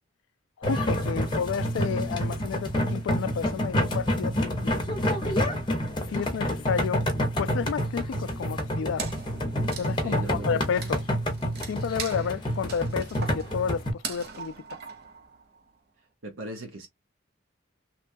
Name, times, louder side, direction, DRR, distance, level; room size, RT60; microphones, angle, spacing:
voice 1, 0.6-4.6 6.1-7.1 7.4-9.1 9.8-11.0 11.7-14.5, left 7 dB, 70° left, 0.3 m, -31 dB
sound 1, 0.6-13.9, equal, 20° left, 0.7 m, -28 dB
Wood, 9.0-15.7, right 6 dB, 50° right, 0.6 m, -41 dB
voice 2, 10.0-10.9 16.2-16.9, right 1 dB, 85° right, 0.8 m, -38 dB
3.1 x 2.3 x 2.5 m
head